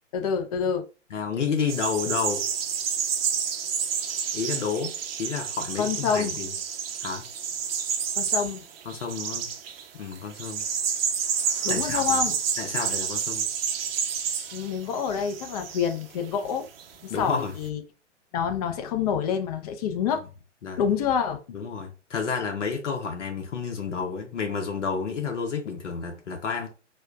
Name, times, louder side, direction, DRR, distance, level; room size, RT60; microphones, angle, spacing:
voice 1, 0.1-0.8 5.8-6.4 8.2-8.6 11.6-12.4 14.5-16.7 17.0-17.8 18.3-20.2 20.8-21.4, left 7 dB, 30° left, 0.5 m, -27 dB
voice 2, 1.1-2.4 4.3-6.5 7.0-7.2 8.9-9.5 9.9-10.6 11.7-12.2 12.6-13.4 17.1-17.5 20.6-20.8 21.5-26.7, left 5 dB, 75° left, 0.8 m, -30 dB
sound 1, 1.7-16.0 16.4-16.8, right 7 dB, 50° right, 0.7 m, -29 dB
4.4 x 2.2 x 2.3 m
figure-of-eight pair, 125°, 37 cm